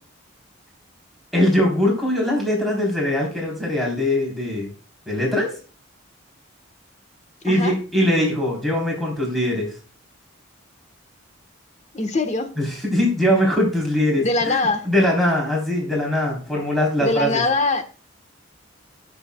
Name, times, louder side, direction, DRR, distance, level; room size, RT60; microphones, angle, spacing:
voice 1, 1.3-4.7 5.1-5.5 7.4-9.7 12.6-17.4, left 1 dB, ahead, -3 dB, 3.8 m, -21 dB
voice 2, 7.4-7.7 11.9-12.5 14.2-14.9 17.0-17.8, left 3 dB, 35° left, 8 dB, 1.4 m, -22 dB
22.0 x 7.3 x 2.3 m, 0.38 s
head